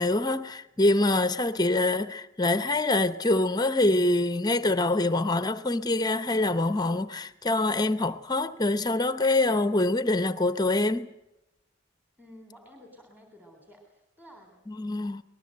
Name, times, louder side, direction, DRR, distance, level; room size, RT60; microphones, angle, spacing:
voice 1, 0.0-11.1 14.7-15.2, left 2 dB, 20° left, 0.8 m, -25 dB
voice 2, 12.2-15.0, equal, 10° right, 3.5 m, -53 dB
25.0 x 20.0 x 7.7 m
head